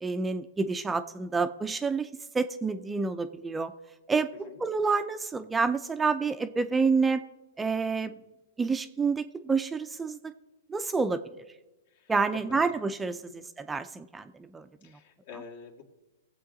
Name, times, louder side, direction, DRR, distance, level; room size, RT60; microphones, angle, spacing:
voice 1, 0.0-2.1 2.3-3.7 4.1-7.2 7.6-8.2 8.6-10.2 10.7-11.2 12.1-14.7, right 4 dB, 10° right, 10 dB, 0.4 m, -28 dB
voice 2, 11.9-12.4 13.3-13.4 14.8-15.8, left 6 dB, 65° left, 2 dB, 2.0 m, -47 dB
19.5 x 7.6 x 3.8 m, 1.1 s
hypercardioid pair, 140°, 0 cm